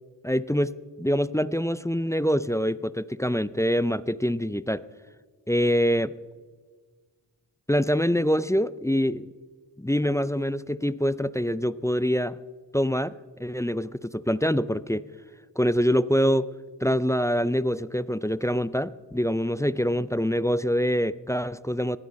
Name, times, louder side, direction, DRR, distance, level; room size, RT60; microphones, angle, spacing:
voice 1, 0.2-0.7 1.0-4.8 5.5-6.1 7.7-9.3 9.8-12.4 12.7-13.1 13.4-15.0 15.6-16.5 16.8-22.0, equal, 5° left, 17 dB, 0.4 m, -25 dB
19.0 x 14.0 x 5.3 m, 1.5 s
cardioid pair, 55°, 44 cm